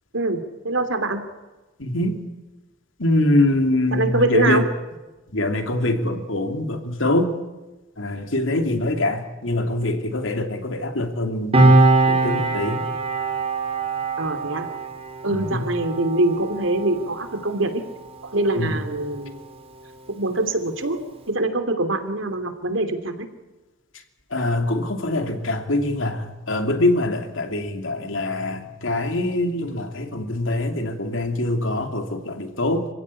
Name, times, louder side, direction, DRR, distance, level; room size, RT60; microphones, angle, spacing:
voice 1, 0.1-1.2 3.9-4.6 14.2-14.7 15.2-17.7 18.2-19.4 20.1-21.0 21.3-23.3, right 2 dB, 80° right, 8 dB, 2.9 m, -23 dB
voice 2, 1.8-2.2 3.0-4.6 5.3-7.3 8.0-11.8 12.1-12.8 15.3-15.7 18.6-18.8 24.3-32.9, left 1 dB, 90° left, 6 dB, 2.8 m, -24 dB
Piano, 11.5-18.6 18.8-19.1, right 2 dB, 30° right, 3.9 m, -22 dB
26.0 x 16.0 x 9.8 m, 1.1 s
head